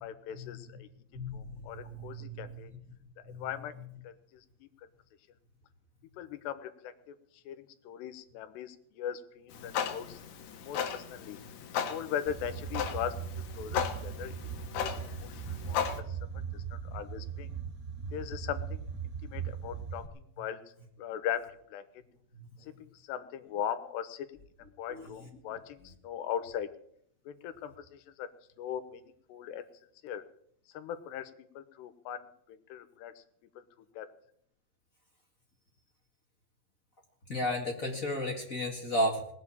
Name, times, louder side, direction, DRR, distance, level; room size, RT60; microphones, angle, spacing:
voice 1, 0.0-0.9 1.3-2.7 3.3-3.7 4.0-4.1 4.6-4.7 6.2-7.1 7.5-10.2 10.6-11.4 11.9-13.1 13.6-14.3 14.8-14.9 15.2-16.6 16.9-17.5 18.1-18.8 19.2-20.1 20.4-20.6 21.0-21.8 22.6-24.3 24.8-26.7 27.3-28.3 28.6-29.0 29.3-29.7 30.0-30.2 30.7-32.3 32.7-33.2 33.6-33.7 34.0-34.1, left 9 dB, 90° left, 11 dB, 3.2 m, -39 dB
voice 2, 1.1-2.8 3.2-3.4 22.4-22.5 24.9-25.3 37.3-39.3, left 1 dB, 40° left, 1 dB, 1.1 m, -34 dB
Clock, 9.5-16.0, left 8 dB, 65° left, 2.0 m, -36 dB
sound 1, 12.3-20.1, right 7 dB, 40° right, 1.3 m, -39 dB
19.5 x 8.0 x 8.5 m, 0.70 s
omnidirectional pair, 4.8 m